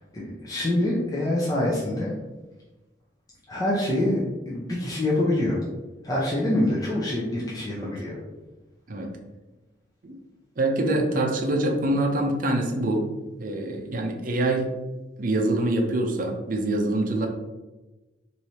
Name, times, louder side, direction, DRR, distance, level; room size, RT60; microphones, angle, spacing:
voice 1, 0.0-2.1 3.5-5.6 6.0-8.2, left 1 dB, 20° left, -5 dB, 0.6 m, -25 dB
voice 2, 10.6-13.1 13.4-14.7 15.2-17.3, right 1 dB, 45° right, 2 dB, 0.6 m, -25 dB
3.2 x 2.7 x 4.2 m, 1.1 s
head